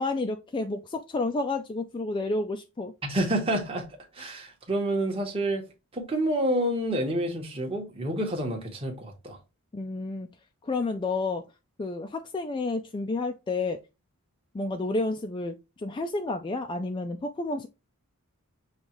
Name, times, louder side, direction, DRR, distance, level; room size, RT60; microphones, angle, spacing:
voice 1, 0.0-2.9 9.7-10.3 10.6-11.4 11.8-13.8 14.5-17.7, left 3 dB, 20° left, 0.3 m, -30 dB
voice 2, 3.0-3.9 4.1-5.7 5.9-9.4, right 1 dB, 25° right, 1.2 m, -28 dB
7.1 x 2.4 x 3.0 m
head